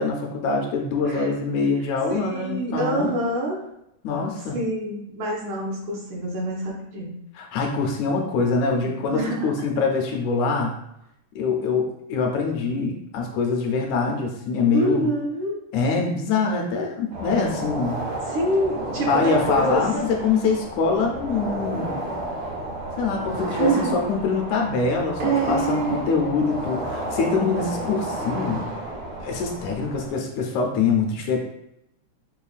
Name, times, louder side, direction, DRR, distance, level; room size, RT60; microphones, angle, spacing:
voice 1, 0.0-3.2 4.0-4.6 7.4-10.8 11.4-15.1 15.7-18.0 19.1-22.1 23.0-28.6 29.2-31.4, left 4 dB, 80° left, 1 dB, 1.9 m, -24 dB
voice 2, 2.1-3.6 4.5-7.1 8.6-9.4 14.7-15.5 18.3-19.8 23.5-23.9 25.2-26.1, right 2 dB, 80° right, -3 dB, 2.3 m, -26 dB
sound 1, 17.1-30.1, right 1 dB, 65° right, 1.0 m, -32 dB
5.5 x 2.2 x 2.4 m, 0.81 s
omnidirectional pair, 3.4 m